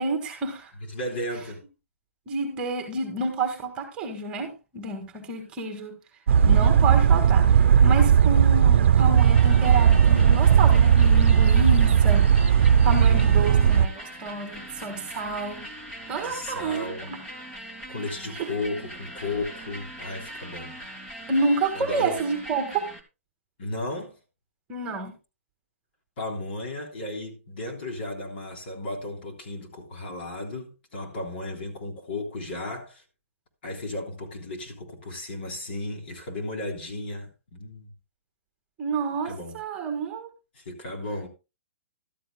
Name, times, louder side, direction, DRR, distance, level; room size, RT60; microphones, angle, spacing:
voice 1, 0.0-0.7 2.3-5.9 6.4-12.3 12.6-15.7 16.1-17.2 18.4-18.5 21.3-22.9 24.7-25.1 38.8-40.3, right 3 dB, 15° right, 1.7 m, -29 dB
voice 2, 0.8-1.6 12.7-13.5 16.1-17.1 17.9-20.7 21.7-22.2 23.6-24.2 26.2-33.0 33.6-37.9 39.2-39.6 40.5-41.3, left 2 dB, 50° left, 3.3 m, -34 dB
sound 1, 6.3-13.9, right 8 dB, 55° right, 0.8 m, -17 dB
sound 2, 9.2-23.0, equal, 10° left, 1.2 m, -41 dB
14.5 x 12.5 x 2.2 m
hypercardioid pair, 170°, 7 cm